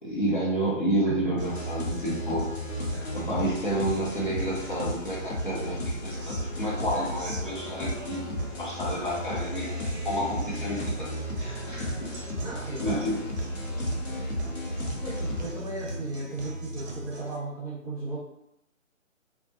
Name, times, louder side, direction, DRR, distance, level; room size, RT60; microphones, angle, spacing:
voice 1, 0.0-2.5 3.1-8.2 8.6-9.7 10.0-12.1 12.8-13.2, right 1 dB, 40° left, -6 dB, 0.5 m, -30 dB
sound 1, 1.4-15.5, left 1 dB, 70° left, 0.8 m, -34 dB
Guitar, 1.4-17.4, right 1 dB, 55° right, 0.6 m, -39 dB
voice 2, 12.4-13.0 14.0-14.4 15.0-18.2, right 2 dB, 30° right, -8 dB, 0.9 m, -36 dB
2.3 x 2.0 x 2.6 m, 0.79 s
figure-of-eight pair, 145°, 40 cm